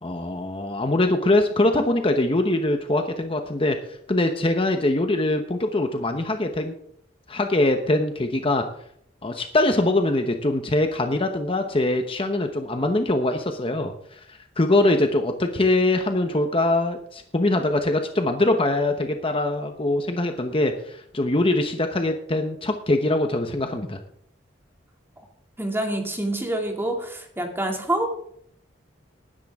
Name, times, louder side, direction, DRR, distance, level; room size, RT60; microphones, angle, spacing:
voice 1, 0.0-6.7 7.3-8.6 9.2-24.0, left 2 dB, 30° left, 5 dB, 1.0 m, -23 dB
voice 2, 25.6-28.3, right 1 dB, 15° right, 2 dB, 2.4 m, -27 dB
19.0 x 10.5 x 3.6 m, 0.69 s
head